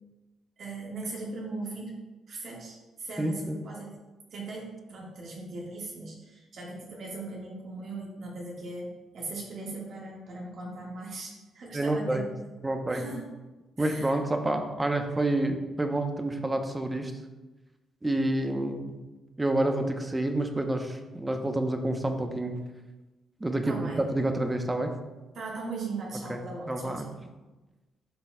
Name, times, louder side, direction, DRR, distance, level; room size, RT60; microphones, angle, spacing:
voice 1, 0.6-2.0 2.3-4.0 4.3-12.3 12.9-13.3 13.8-14.2 23.6-24.0 25.3-27.2, right 3 dB, 65° right, -3 dB, 1.5 m, -39 dB
voice 2, 3.2-3.6 11.7-12.3 12.6-13.1 13.8-17.1 18.0-19.0 19.4-22.6 23.4-24.9 26.3-26.4 26.7-27.1, right 1 dB, 15° right, 5 dB, 0.7 m, -28 dB
11.0 x 4.0 x 2.2 m, 1.1 s
cardioid pair, 90°, 0 cm